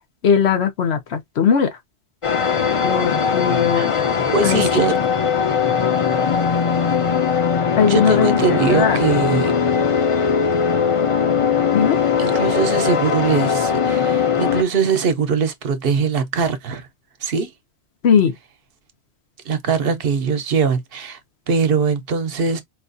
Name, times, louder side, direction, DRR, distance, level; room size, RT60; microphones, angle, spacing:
voice 1, 0.2-1.7 2.8-4.0 4.4-4.7 7.8-9.0 11.7-12.0 18.0-18.3, left 7 dB, 85° left, 1.1 m, -19 dB
sound 1, 2.2-14.6, left 6 dB, 40° left, 0.6 m, -19 dB
voice 2, 4.3-4.9 7.9-9.5 12.2-16.9 17.2-17.5 19.4-21.2 21.5-22.6, right 5 dB, 65° right, 1.0 m, -21 dB
4.5 x 2.4 x 2.5 m
omnidirectional pair, 1.1 m